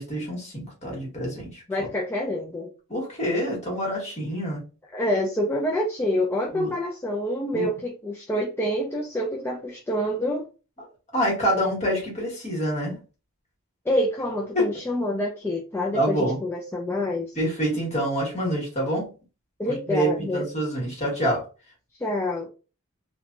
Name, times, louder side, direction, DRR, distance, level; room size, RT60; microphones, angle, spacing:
voice 1, 0.0-1.9 2.9-4.6 6.5-6.7 7.5-7.7 11.1-13.0 14.5-14.7 15.9-16.4 17.3-19.1 19.9-21.4, equal, 30° left, -2 dB, 1.4 m, -26 dB
voice 2, 1.7-2.7 4.9-10.4 13.9-17.4 19.6-20.5 22.0-22.5, left 1 dB, 10° left, -1 dB, 0.3 m, -27 dB
3.2 x 2.2 x 2.5 m, 0.33 s
head